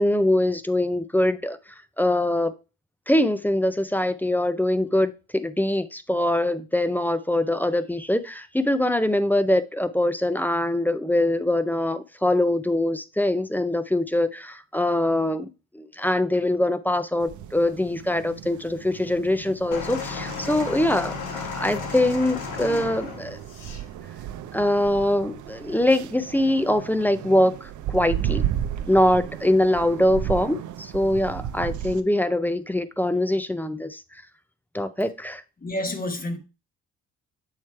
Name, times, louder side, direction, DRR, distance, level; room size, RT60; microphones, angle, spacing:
voice 1, 0.0-1.6 2.0-2.5 3.1-23.4 24.5-28.4 28.9-34.0 34.7-35.4, left 1 dB, 5° left, 0.5 m, -23 dB
sound 1, 17.2-32.0, right 10 dB, 75° right, 0.6 m, -34 dB
sound 2, 19.7-23.8 24.7-24.8, left 5 dB, 85° left, 1.4 m, -34 dB
voice 2, 35.6-36.4, left 1 dB, 30° left, 1.3 m, -29 dB
7.3 x 3.1 x 4.4 m
cardioid pair, 90°, 30 cm